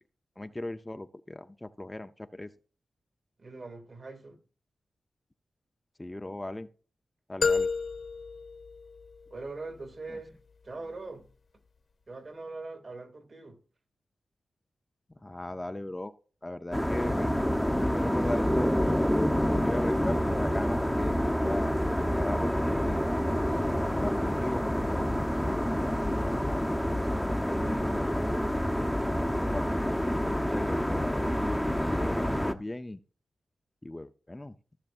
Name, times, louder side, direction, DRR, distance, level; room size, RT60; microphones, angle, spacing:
voice 1, 0.4-2.5 6.0-6.7 7.3-7.7 15.2-16.1 16.4-17.4 17.7-18.7 19.5-21.2 21.4-23.0 23.8-25.1 25.4-28.3 29.3-31.6 31.9-33.0 33.8-34.5, left 1 dB, 20° left, 0.6 m, -38 dB
voice 2, 3.4-4.4 9.3-10.4 10.6-11.3 12.1-13.6, right 3 dB, 50° right, 2.4 m, -42 dB
sound 1, 7.4-9.5, left 4 dB, 60° left, 1.4 m, -30 dB
sound 2, 16.7-32.5, equal, 5° left, 0.9 m, -28 dB
16.0 x 6.8 x 2.5 m
cardioid pair, 70°, 0 cm